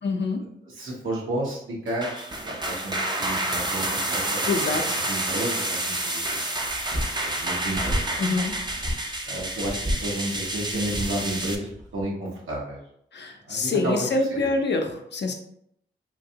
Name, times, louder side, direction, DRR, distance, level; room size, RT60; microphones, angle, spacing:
voice 1, 0.0-0.5 4.5-5.0 8.2-8.5 13.1-15.3, left 3 dB, 55° left, 3 dB, 0.6 m, -26 dB
voice 2, 0.8-6.4 6.9-8.2 9.3-12.8 13.5-14.5, right 1 dB, 70° right, -4 dB, 1.2 m, -32 dB
sound 1, 1.9-11.5, right 1 dB, 20° right, 0.6 m, -29 dB
sound 2, 6.6-12.0, equal, 35° right, 1.0 m, -33 dB
2.9 x 2.6 x 2.8 m, 0.72 s
supercardioid pair, 40°, 21 cm